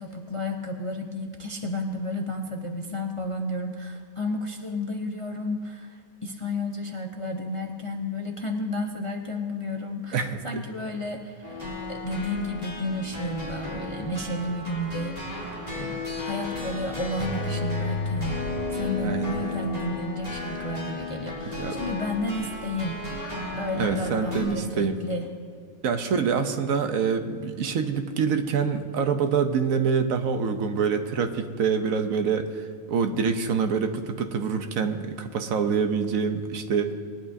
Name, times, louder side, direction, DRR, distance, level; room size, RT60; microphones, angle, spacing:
voice 1, 0.0-15.2 15.7-18.4 18.7-23.0 23.5-25.3, left 1 dB, 35° left, 2 dB, 0.5 m, -32 dB
sound 1, 11.4-24.4, left 2 dB, 25° right, 2.8 m, -33 dB
voice 2, 19.0-19.6 21.5-21.8 23.7-25.0 25.8-36.9, right 6 dB, 75° right, 7 dB, 1.2 m, -26 dB
20.0 x 11.0 x 2.7 m, 2.2 s
omnidirectional pair, 1.5 m